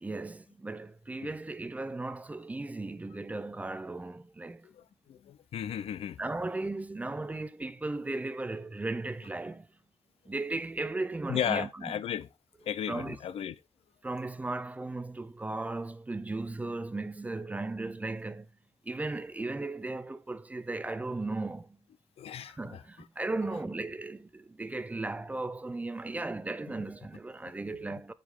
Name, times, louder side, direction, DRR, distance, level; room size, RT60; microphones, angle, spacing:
voice 1, 0.0-4.7 6.2-9.7 10.3-11.9 12.9-13.2 14.0-18.5 18.8-21.8 22.6-28.1, right 2 dB, 15° right, 0.4 m, -36 dB
voice 2, 5.1-6.2 11.3-12.3 12.6-13.6 22.2-22.8, left 9 dB, 80° left, 0.5 m, -34 dB
8.3 x 5.0 x 3.7 m
wide cardioid pair, 155°, 10 cm